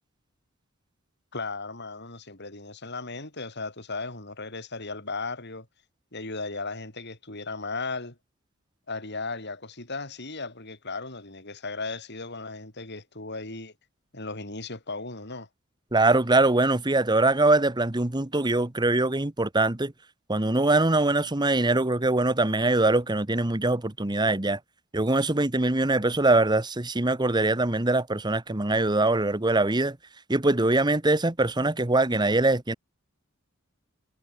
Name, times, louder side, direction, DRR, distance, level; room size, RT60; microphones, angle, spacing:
voice 1, 1.3-5.7 6.1-8.2 8.9-13.7 14.1-15.5, left 3 dB, 55° left, 7.1 m, -36 dB
voice 2, 15.9-19.9 20.3-24.6 24.9-30.0 30.3-32.7, right 2 dB, 20° right, 1.2 m, -23 dB
head